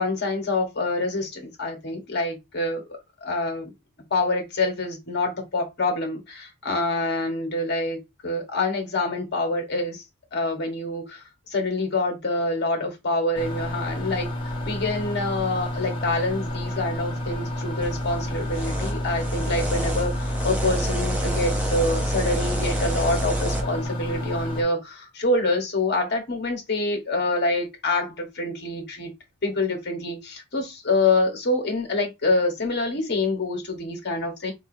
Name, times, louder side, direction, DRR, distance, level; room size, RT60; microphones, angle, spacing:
voice 1, 0.0-2.8 3.2-3.7 4.1-10.0 10.3-29.1 29.4-34.5, left 2 dB, 50° left, 1.2 m, -26 dB
sound 1, 13.3-24.6, left 1 dB, 25° left, 1.2 m, -30 dB
sound 2, 17.8-23.6, right 1 dB, 5° right, 0.6 m, -28 dB
4.8 x 2.7 x 2.6 m
head